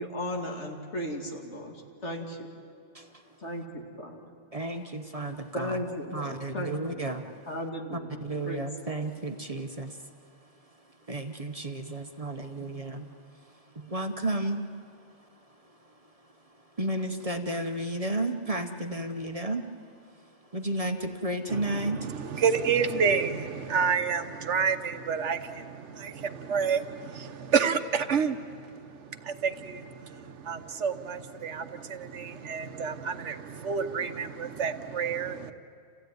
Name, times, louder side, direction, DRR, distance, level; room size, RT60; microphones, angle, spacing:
voice 1, 0.0-1.7 2.0-2.5 3.4-4.2 5.5-7.2 7.5-8.7 12.6-12.7, equal, 70° left, 1 dB, 2.8 m, -36 dB
voice 2, 4.5-5.8 6.1-7.3 8.2-10.1 11.1-14.6 15.9-16.0 16.8-19.7 20.5-22.1, right 1 dB, 35° right, 6 dB, 1.0 m, -33 dB
voice 3, 21.5-35.5, right 6 dB, 75° right, 9 dB, 1.3 m, -29 dB
28.0 x 16.0 x 9.5 m, 2.3 s
omnidirectional pair, 1.2 m